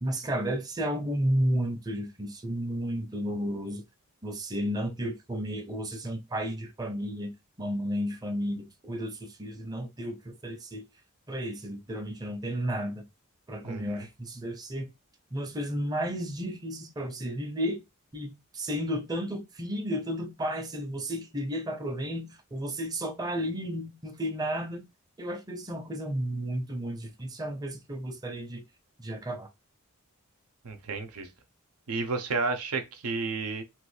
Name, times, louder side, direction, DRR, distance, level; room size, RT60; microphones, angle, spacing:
voice 1, 0.0-3.8 4.2-7.3 7.6-10.8 11.3-13.0 13.5-14.9 15.3-17.8 18.1-24.8 25.2-28.6 29.0-29.5, equal, 20° right, 0.5 m, -32 dB
voice 2, 13.6-14.1 30.6-31.3 31.9-33.6, right 4 dB, 90° right, 0.6 m, -32 dB
3.0 x 2.4 x 3.1 m
head